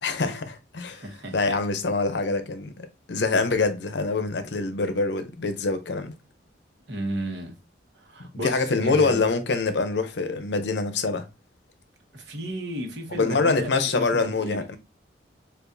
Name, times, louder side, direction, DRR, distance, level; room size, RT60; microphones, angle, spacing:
voice 1, 0.0-1.0 1.3-6.1 8.4-11.2 13.1-14.8, left 3 dB, 70° left, 0.6 m, -25 dB
voice 2, 0.9-1.6 6.9-7.6 7.9-9.2 12.1-14.7, equal, 70° right, 1.2 m, -34 dB
6.8 x 2.5 x 2.6 m
head